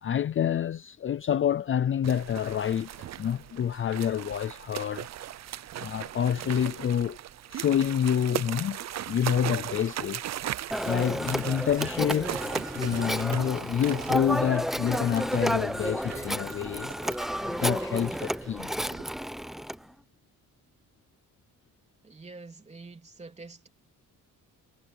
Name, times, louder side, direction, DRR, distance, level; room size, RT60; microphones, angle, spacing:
voice 1, 0.0-5.1 5.8-7.2 7.5-8.8 9.1-10.3 10.8-16.9 17.4-18.7, left 9 dB, 40° left, 0.5 m, -28 dB
sound 1, 2.0-19.0, right 12 dB, 50° right, 0.7 m, -39 dB
Telephone, 10.7-19.8, equal, ahead, 0.7 m, -31 dB
voice 2, 22.0-23.7, right 3 dB, 20° right, 3.3 m, -46 dB
cardioid pair, 155°, 34 cm